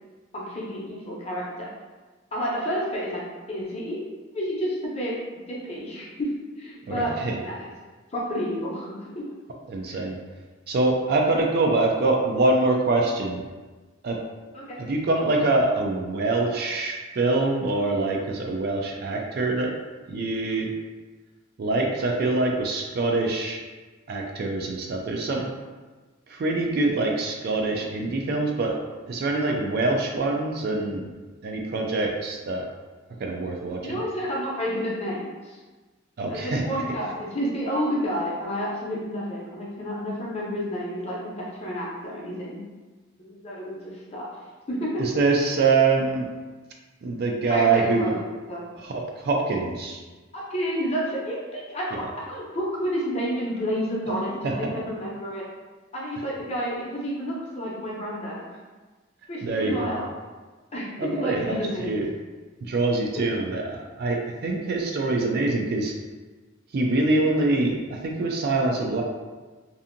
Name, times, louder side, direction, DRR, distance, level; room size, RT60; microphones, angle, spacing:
voice 1, 0.3-1.7 2.3-3.2 3.5-4.0 4.3-5.1 5.5-6.3 6.6-7.1 7.4-7.7 8.1-9.2 9.9-10.1 14.5-14.8 33.8-35.6 36.3-42.6 43.2-44.3 44.7-44.9 47.5-48.6 50.3-55.4 55.9-58.4 59.3-60.0 60.7-62.1, equal, 30° left, -5 dB, 0.6 m, -30 dB
voice 2, 6.9-7.5 9.7-10.2 10.7-13.4 14.0-14.2 14.8-19.7 20.1-20.7 21.6-23.6 24.1-25.5 26.3-28.8 29.1-31.1 31.4-32.7 33.2-34.0 36.2-36.8 45.0-46.3 47.0-48.2 48.8-50.0 51.9-52.0 54.4-54.7 59.4-59.9 61.0-62.1 62.6-65.9 66.7-69.0, right 3 dB, 50° right, 1 dB, 0.3 m, -24 dB
2.7 x 2.5 x 2.5 m, 1.3 s
head